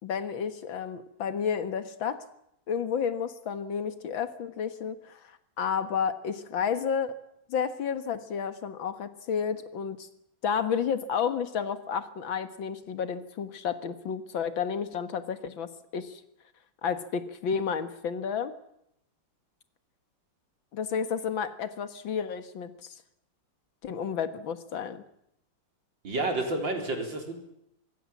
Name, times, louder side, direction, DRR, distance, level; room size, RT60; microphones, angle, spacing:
voice 1, 0.0-2.2 2.7-5.2 5.6-7.2 7.5-10.1 10.4-16.2 16.8-18.5 20.7-22.7 23.8-25.0, left 7 dB, 80° left, 11 dB, 2.3 m, -31 dB
voice 2, 26.0-27.3, right 2 dB, 70° right, 3 dB, 4.9 m, -30 dB
24.5 x 22.5 x 7.4 m, 0.78 s
omnidirectional pair, 2.1 m